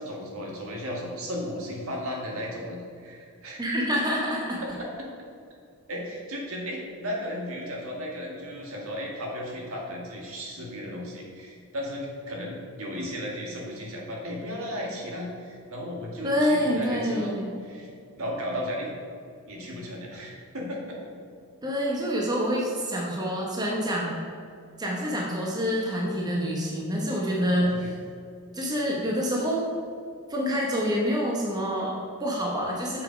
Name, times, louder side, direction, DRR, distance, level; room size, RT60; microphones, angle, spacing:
voice 1, 0.0-3.8 4.8-5.1 5.9-17.3 17.6-17.9 18.2-18.9 19.5-21.0 27.7-27.9, equal, 65° right, -2 dB, 1.9 m, -35 dB
voice 2, 3.6-4.6 16.2-17.5 21.6-24.1 24.8-28.0 28.5-29.7 30.3-33.0, equal, 20° right, -3 dB, 1.0 m, -27 dB
7.4 x 6.3 x 5.1 m, 2.4 s
head